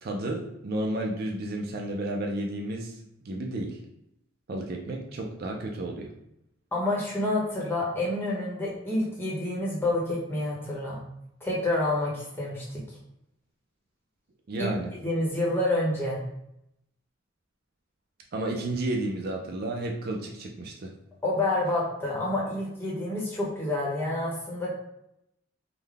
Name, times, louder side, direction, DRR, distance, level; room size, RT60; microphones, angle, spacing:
voice 1, 0.0-3.0 3.2-3.8 4.5-6.1 14.5-14.9 18.3-20.9, right 1 dB, 50° right, 1 dB, 0.4 m, -32 dB
voice 2, 6.7-11.0 11.4-12.8 14.6-14.7 15.0-16.2 21.2-24.7, left 1 dB, 10° left, -5 dB, 0.9 m, -28 dB
3.8 x 2.1 x 3.3 m, 0.81 s
head